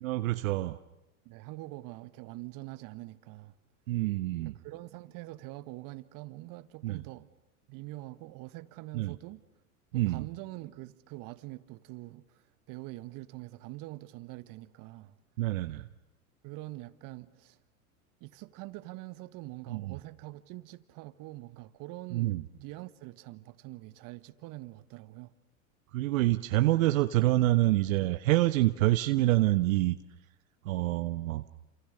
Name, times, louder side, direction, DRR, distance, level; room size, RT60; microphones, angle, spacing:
voice 1, 0.0-0.8 3.9-4.5 6.8-7.0 8.9-9.1 9.9-10.2 15.4-15.9 19.7-19.9 22.1-22.4 25.9-30.0 30.6-31.4, right 17 dB, 70° right, 1.3 m, -27 dB
voice 2, 1.3-3.6 4.4-7.3 7.7-9.4 9.9-15.2 16.4-17.6 18.2-25.3, right 19 dB, 50° right, 1.8 m, -44 dB
29.0 x 28.0 x 6.8 m
hypercardioid pair, 95°, 42 cm